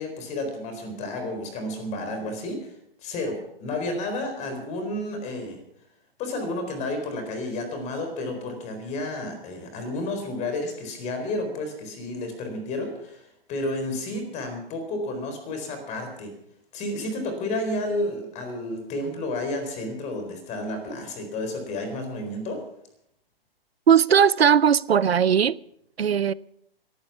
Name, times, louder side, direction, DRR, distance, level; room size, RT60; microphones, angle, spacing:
voice 1, 0.0-2.7 3.0-5.6 6.2-16.3 16.7-22.6, left 1 dB, 25° left, 4.2 m, -31 dB
voice 2, 23.9-25.6 26.0-26.3, right 8 dB, 90° right, 0.6 m, -18 dB
17.5 x 12.0 x 6.0 m
figure-of-eight pair, 130°, 30 cm